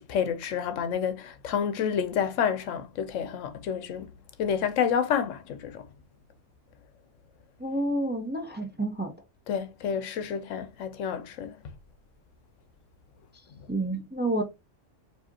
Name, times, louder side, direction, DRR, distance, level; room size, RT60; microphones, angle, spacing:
voice 1, 0.0-4.1 4.4-5.8 9.5-11.6, left 7 dB, 85° left, 1.0 m, -29 dB
voice 2, 7.6-9.1 13.7-14.4, right 1 dB, 10° right, 0.5 m, -29 dB
4.8 x 2.8 x 2.7 m
omnidirectional pair, 1.3 m